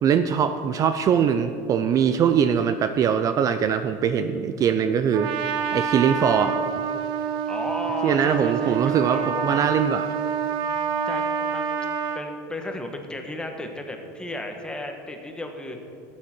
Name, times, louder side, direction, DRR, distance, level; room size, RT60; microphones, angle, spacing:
voice 1, 0.0-5.3 5.7-6.6 8.0-10.1, right 8 dB, 35° right, 9 dB, 0.5 m, -22 dB
Trumpet, 5.1-12.2, right 7 dB, 60° right, 1.0 m, -27 dB
voice 2, 7.5-9.7 11.1-11.7 12.1-15.8, left 1 dB, 10° left, 4 dB, 1.3 m, -34 dB
12.5 x 8.8 x 4.4 m, 2.4 s
supercardioid pair, 115°, 9 cm